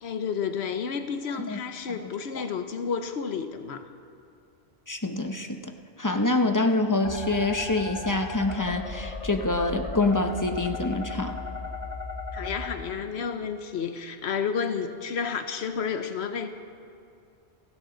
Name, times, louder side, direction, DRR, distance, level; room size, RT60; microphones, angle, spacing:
voice 1, 0.0-3.8 12.3-16.5, left 6 dB, 85° left, 8 dB, 1.1 m, -31 dB
voice 2, 4.9-5.7 6.0-11.3, left 2 dB, 20° left, 6 dB, 0.8 m, -26 dB
sound 1, 7.0-12.7, left 3 dB, 40° left, 2.2 m, -36 dB
30.0 x 12.0 x 4.0 m, 2.4 s
omnidirectional pair, 1.1 m